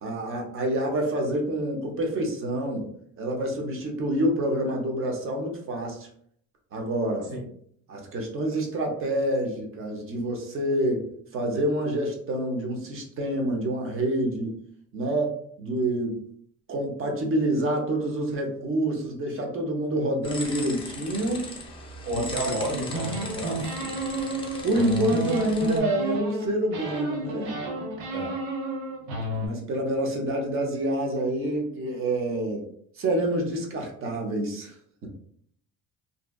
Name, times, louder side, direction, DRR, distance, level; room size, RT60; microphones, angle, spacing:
voice 1, 0.0-2.9 3.2-6.1 6.7-7.3 7.9-14.5 14.9-16.2 16.7-21.4 22.1-22.2 22.7-22.8 23.8-23.9 24.6-27.5 29.4-32.7 33.0-34.8, right 1 dB, 40° right, 2 dB, 0.6 m, -27 dB
sound 1, 20.2-25.8, left 2 dB, 15° left, 0.3 m, -38 dB
voice 2, 22.0-23.7 28.1-28.3, right 1 dB, 65° right, -2 dB, 1.0 m, -31 dB
sound 2, 22.9-26.4 26.7-29.5, right 1 dB, 90° right, 0.7 m, -31 dB
2.6 x 2.2 x 2.2 m, 0.64 s
cardioid pair, 140°, 34 cm